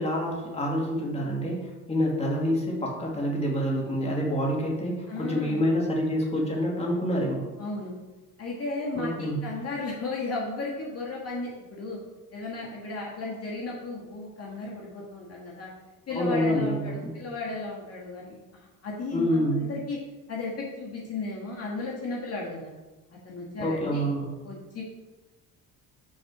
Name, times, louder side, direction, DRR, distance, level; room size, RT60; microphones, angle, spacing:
voice 1, 0.0-7.5 8.9-9.4 16.2-17.1 19.1-19.6 23.6-24.3, equal, 15° left, -2 dB, 2.1 m, -27 dB
voice 2, 5.1-5.6 7.6-7.9 8.4-12.0 12.3-15.7 16.1-20.0 20.3-22.7 23.2-24.1 24.4-24.8, left 3 dB, 40° left, -3 dB, 1.8 m, -35 dB
6.3 x 4.3 x 6.0 m, 1.2 s
cardioid pair, 90°, 35 cm